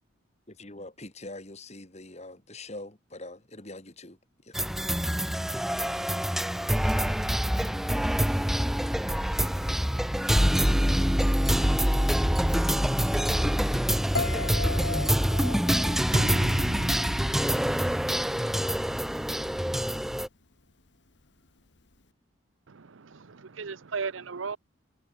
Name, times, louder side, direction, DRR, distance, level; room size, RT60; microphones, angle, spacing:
voice 1, 0.5-4.2 4.5-4.6, left 2 dB, 35° left, 3.0 m, -43 dB
sound 1, 4.5-20.3, equal, ahead, 0.4 m, -25 dB
Piano, 14.1-17.2 17.5-18.0, left 3 dB, 60° left, 2.0 m, -36 dB
sound 2, 16.1-18.1, right 2 dB, 45° right, 1.2 m, -35 dB
voice 2, 22.7-24.6, right 5 dB, 85° right, 0.7 m, -36 dB
head